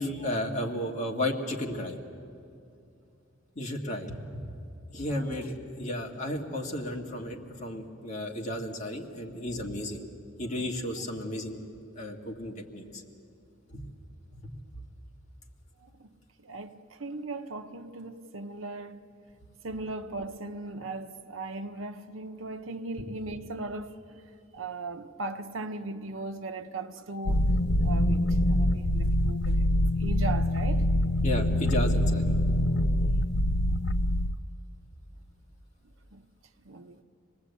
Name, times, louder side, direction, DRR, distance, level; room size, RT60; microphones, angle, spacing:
voice 1, 0.0-2.0 3.6-4.2 4.5-4.6 4.9-10.0 10.4-11.6 12.0-12.8 13.7-13.8 31.2-32.3, left 1 dB, 40° left, 2.1 m, -33 dB
voice 2, 5.1-5.5 15.8-16.1 16.4-19.0 19.6-24.2 24.5-27.5 27.8-30.9 36.1-36.3 36.6-37.0, right 2 dB, 80° right, 1.0 m, -38 dB
sound 1, 27.3-34.4, left 1 dB, 60° left, 0.6 m, -25 dB
26.5 x 19.5 x 8.4 m
head